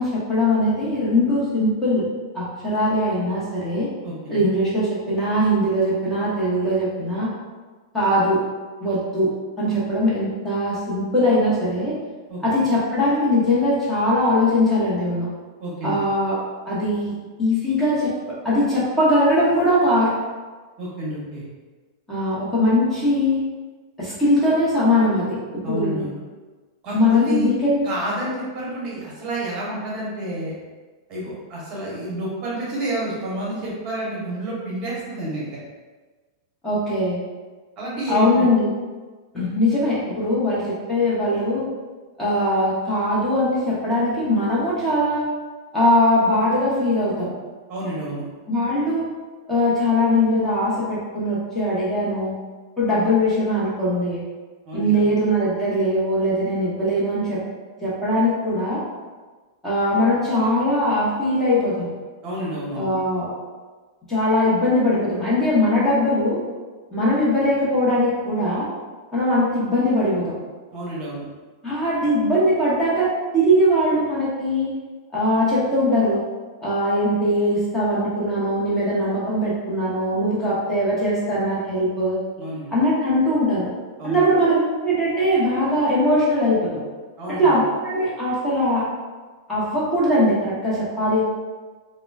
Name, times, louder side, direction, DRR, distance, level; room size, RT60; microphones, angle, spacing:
voice 1, 0.0-2.1 2.3-3.9 4.3-7.3 7.9-8.4 8.8-9.3 9.6-11.9 12.4-15.3 15.8-16.4 16.6-18.1 18.4-20.1 22.1-23.4 24.0-25.4 25.7-26.0 26.9-27.8 36.6-37.2 38.1-38.7 39.3-41.7 42.2-45.2 45.7-47.3 48.5-49.1 49.5-52.3 52.8-54.2 54.7-57.4 57.8-58.8 59.6-61.7 62.7-63.3 64.1-66.4 66.9-68.7 69.1-70.3 71.6-74.7 75.1-76.2 76.6-82.2 82.7-83.7 84.0-86.8 87.4-88.8 89.5-91.2, left 1 dB, 10° left, -9 dB, 0.9 m, -21 dB
voice 2, 4.0-4.4 12.3-12.7 15.6-16.0 20.8-21.4 25.6-26.2 26.8-27.5 27.8-30.5 31.1-35.5 37.8-38.5 47.7-48.2 54.7-55.1 62.2-62.9 70.7-71.2 82.4-82.8 84.0-84.3 87.2-87.6, right 1 dB, 35° right, -6 dB, 0.9 m, -29 dB
3.7 x 2.1 x 2.3 m, 1.3 s
supercardioid pair, 145°, 2 cm